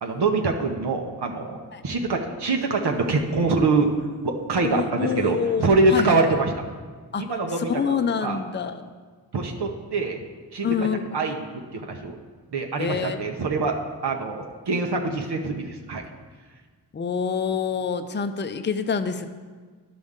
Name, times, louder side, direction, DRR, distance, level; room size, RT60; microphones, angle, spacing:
voice 1, 0.0-1.6 1.8-3.9 4.2-6.5 7.2-8.4 9.3-10.2 10.5-10.9 11.1-11.4 11.7-12.1 12.5-13.8 14.0-16.0, right 3 dB, 75° right, 3 dB, 0.8 m, -24 dB
voice 2, 4.6-6.2 7.1-7.3 7.6-8.9 10.6-11.0 12.8-13.2 16.9-19.3, left 6 dB, 30° left, 8 dB, 0.5 m, -26 dB
11.5 x 5.2 x 3.6 m, 1.5 s
wide cardioid pair, 70°, 41 cm